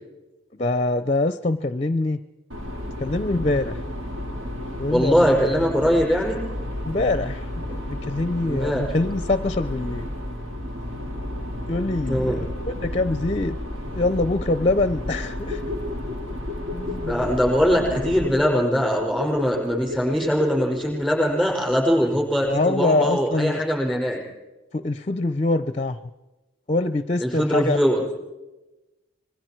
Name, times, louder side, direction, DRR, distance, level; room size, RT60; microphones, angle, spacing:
voice 1, 0.6-2.2 3.0-3.8 4.8-5.3 6.8-10.0 11.7-13.6 13.9-15.6 16.7-17.3 22.5-23.6 24.7-26.0 26.7-27.8, left 2 dB, 30° left, 12 dB, 0.6 m, -24 dB
sound 1, 2.5-18.3, left 1 dB, 85° right, 4.2 m, -32 dB
voice 2, 4.9-6.4 8.5-8.8 12.1-12.4 17.1-24.2 27.2-28.0, equal, 5° right, -1 dB, 5.3 m, -21 dB
sound 2, 15.4-22.2 22.5-22.6, left 3 dB, 55° right, 3.7 m, -33 dB
26.0 x 22.0 x 4.5 m, 1.1 s
head